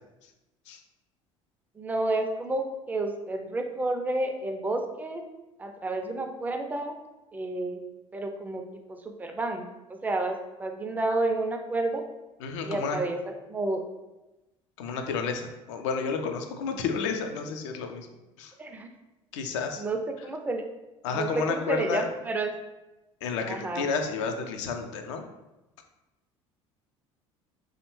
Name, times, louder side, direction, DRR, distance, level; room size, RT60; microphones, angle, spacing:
voice 1, 1.7-5.2 5.6-6.9 7.3-7.8 8.1-8.6 8.9-9.7 10.0-12.0 12.6-13.2 13.5-13.8 18.6-18.9 19.8-20.6 21.1-22.5 23.5-23.9, right 2 dB, 10° right, 4 dB, 0.3 m, -30 dB
voice 2, 12.4-13.0 14.8-18.1 18.4-18.5 19.3-19.8 21.0-22.0 23.2-25.2, left 5 dB, 70° left, 5 dB, 0.4 m, -31 dB
2.7 x 2.1 x 3.0 m, 1.0 s
hypercardioid pair, 65°, 16 cm